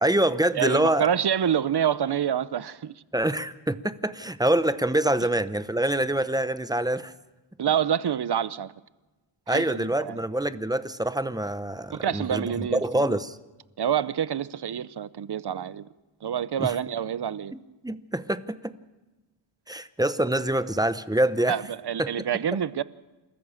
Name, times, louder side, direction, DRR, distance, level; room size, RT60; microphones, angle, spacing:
voice 1, 0.0-1.1 3.1-7.1 9.5-13.4 16.6-16.8 17.5-18.8 19.7-21.6 22.0-22.1 22.5-22.6, right 1 dB, 10° right, 0.8 m, -25 dB
voice 2, 0.6-2.9 7.6-8.7 9.5-10.2 11.9-13.2 13.8-15.9 16.2-17.5 21.5-22.8, right 9 dB, 55° right, 0.7 m, -27 dB
28.0 x 14.0 x 7.1 m
wide cardioid pair, 90°, 47 cm